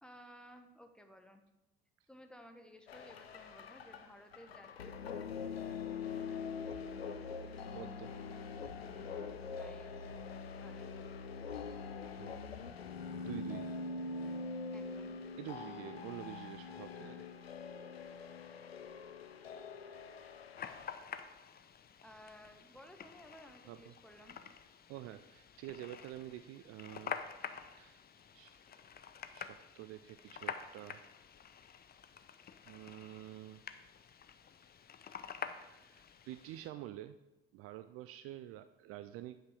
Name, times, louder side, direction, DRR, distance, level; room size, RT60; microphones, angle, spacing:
voice 1, 0.0-1.4 2.1-5.5 8.8-10.1 10.5-10.9 14.7-15.2 22.0-24.4, equal, 5° left, 5 dB, 1.1 m, -57 dB
sound 1, 2.9-21.0, left 5 dB, 85° left, 0.5 m, -44 dB
voice 2, 7.7-8.1 12.2-12.4 13.2-13.7 15.4-17.3 23.7-23.9 24.9-27.2 27.8-28.0 28.3-28.6 29.3-31.0 32.7-33.6 35.6-37.2 37.5-39.4, right 14 dB, 50° right, 12 dB, 0.4 m, -48 dB
sound 2, 20.6-36.7, left 7 dB, 30° left, 0.6 m, -48 dB
9.4 x 5.7 x 4.8 m, 0.97 s
figure-of-eight pair, 45°, 30 cm